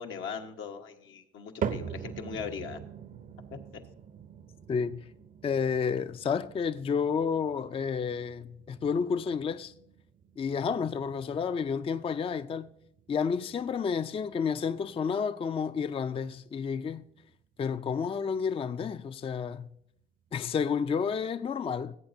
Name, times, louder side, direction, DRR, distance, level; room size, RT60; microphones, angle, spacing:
voice 1, 0.0-2.8, left 6 dB, 80° left, 1.2 m, -39 dB
sound 1, 1.6-17.9 18.3-18.8 19.4-19.5 20.3-20.4, right 7 dB, 45° right, 0.6 m, -44 dB
voice 2, 4.7-5.0 5.4-9.7 10.4-12.7 13.1-17.0 17.6-19.7 20.3-22.0, left 6 dB, 30° left, 0.4 m, -30 dB
17.0 x 8.0 x 2.6 m
cardioid pair, 90°, 20 cm